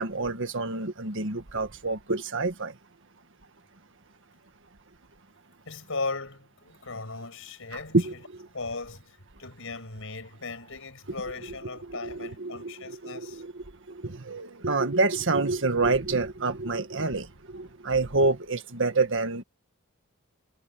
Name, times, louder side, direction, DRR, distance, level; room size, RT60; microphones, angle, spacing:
voice 1, 0.0-2.7 7.9-8.5 11.8-19.4, right 3 dB, 60° right, 1.8 m, -28 dB
voice 2, 5.7-8.2 8.5-13.4, left 3 dB, 65° left, 6.8 m, -37 dB
head